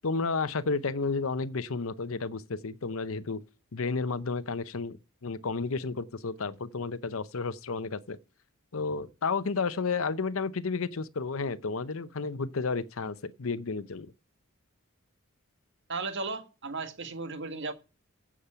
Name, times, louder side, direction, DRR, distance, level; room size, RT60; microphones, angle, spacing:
voice 1, 0.0-3.4 3.7-8.2 8.7-14.1, left 4 dB, 70° left, 0.7 m, -32 dB
voice 2, 15.9-17.7, right 3 dB, 55° right, 1.7 m, -35 dB
15.0 x 7.3 x 5.7 m
head